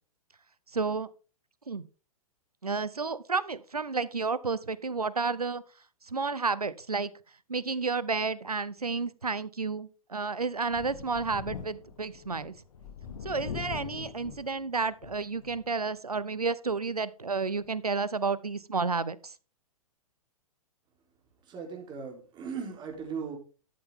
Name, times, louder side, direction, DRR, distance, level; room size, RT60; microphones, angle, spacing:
voice 1, 0.7-1.1 1.7-1.9 2.6-5.6 6.1-7.1 7.5-12.5 13.2-19.3, right 4 dB, 90° right, 0.7 m, -31 dB
Thunder, 10.6-15.7 16.2-16.3 17.6-17.7, left 6 dB, 60° left, 1.5 m, -42 dB
voice 2, 21.5-23.4, right 6 dB, 25° right, 3.5 m, -38 dB
12.5 x 8.1 x 3.6 m
figure-of-eight pair, 110°, 19 cm